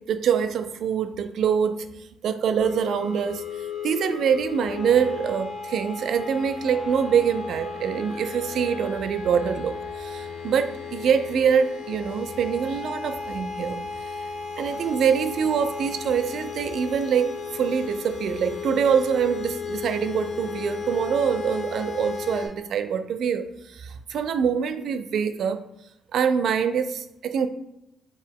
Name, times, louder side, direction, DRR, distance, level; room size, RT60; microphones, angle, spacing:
voice 1, 0.1-3.4 3.8-14.1 14.6-25.6 26.1-27.5, right 7 dB, 70° right, 10 dB, 0.4 m, -25 dB
sound 1, 2.6-22.5, left 5 dB, 75° left, 1.0 m, -35 dB
4.4 x 3.0 x 3.6 m, 0.83 s
cardioid pair, 90°, 0 cm